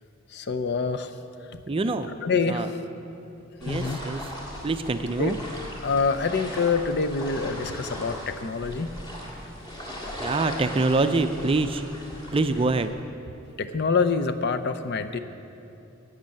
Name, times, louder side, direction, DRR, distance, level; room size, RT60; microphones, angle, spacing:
voice 1, 0.3-1.1 1.5-1.6 2.2-2.7 3.7-4.0 5.2-5.3 5.8-8.9 13.6-15.2, left 4 dB, 55° left, 9 dB, 0.6 m, -26 dB
voice 2, 1.7-2.1 2.5-2.7 3.6-4.2 4.6-5.4 10.2-11.8 12.3-12.9, right 3 dB, 25° right, 9 dB, 0.4 m, -25 dB
sound 1, 3.6-12.9, equal, 20° left, 1.8 m, -38 dB
12.0 x 8.1 x 7.5 m, 2.7 s
head